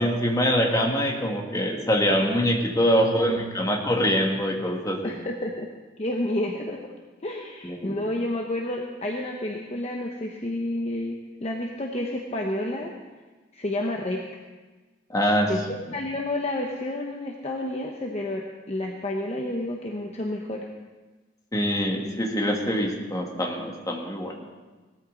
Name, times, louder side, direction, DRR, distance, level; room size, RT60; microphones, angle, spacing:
voice 1, 0.0-5.1 7.6-7.9 15.1-15.5 21.5-24.3, equal, 20° left, 0 dB, 1.9 m, -24 dB
voice 2, 3.1-3.7 5.0-5.7 6.0-6.8 7.2-12.9 13.5-14.2 15.5-15.6 15.9-20.6, left 1 dB, 35° left, 1 dB, 1.0 m, -30 dB
19.0 x 13.5 x 4.0 m, 1.3 s
head